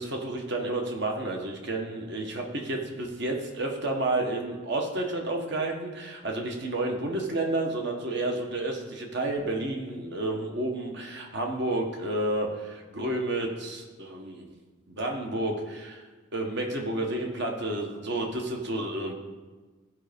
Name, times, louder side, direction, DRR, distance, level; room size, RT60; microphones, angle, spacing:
voice 1, 0.0-14.5 14.9-16.0 16.3-19.1, right 2 dB, 55° right, 2 dB, 1.5 m, -30 dB
15.0 x 5.3 x 5.3 m, 1.3 s
head